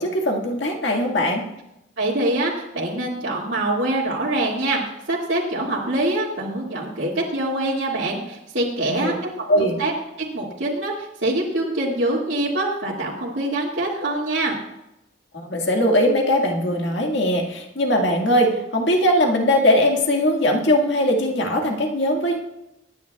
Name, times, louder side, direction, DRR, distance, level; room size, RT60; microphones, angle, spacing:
voice 1, 0.0-1.5 8.8-9.1 9.5-9.8 15.3-22.4, left 1 dB, 60° left, 1 dB, 1.8 m, -20 dB
voice 2, 2.0-4.8 5.1-9.3 9.6-9.9 10.2-14.6, right 1 dB, 75° right, -6 dB, 2.1 m, -24 dB
24.0 x 10.0 x 2.3 m, 0.90 s
head